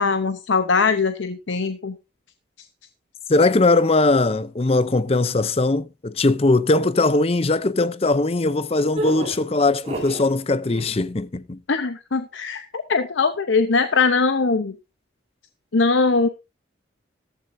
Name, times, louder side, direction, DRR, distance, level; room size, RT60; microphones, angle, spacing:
voice 1, 0.0-2.0 11.7-14.7 15.7-16.3, left 4 dB, 80° left, 0.8 m, -21 dB
voice 2, 3.3-11.6, left 2 dB, 30° left, 0.6 m, -20 dB
sound 1, 8.9-10.3 10.6-11.1, right 2 dB, 30° right, 7.4 m, -30 dB
14.0 x 12.5 x 2.7 m
head